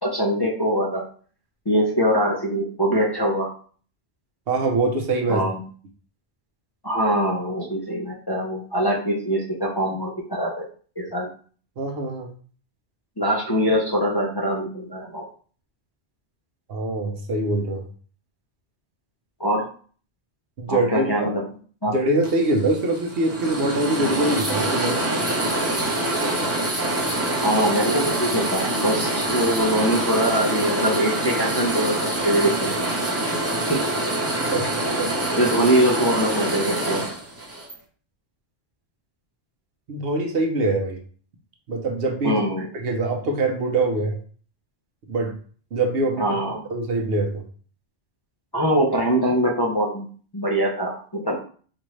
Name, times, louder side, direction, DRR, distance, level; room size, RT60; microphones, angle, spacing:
voice 1, 0.0-1.0 1.7-3.5 5.3-5.6 6.8-10.7 11.0-11.3 13.2-15.3 19.4-19.7 20.7-21.4 21.8-21.9 27.4-32.8 33.7-33.8 35.4-37.0 42.2-42.7 46.2-46.6 48.5-50.1 50.3-51.4, equal, 30° left, -4 dB, 0.5 m, -23 dB
voice 2, 4.5-5.4 11.8-12.3 16.7-17.8 20.6-21.3 21.8-25.0 34.5-35.3 39.9-41.0 41.7-42.4 42.7-44.2 45.1-45.3 45.7-46.4 46.7-47.4, right 2 dB, 60° right, 2 dB, 0.9 m, -24 dB
sound 1, 22.2-37.7, right 1 dB, 15° right, 0.6 m, -25 dB
4.4 x 2.5 x 3.1 m, 0.43 s
omnidirectional pair, 1.2 m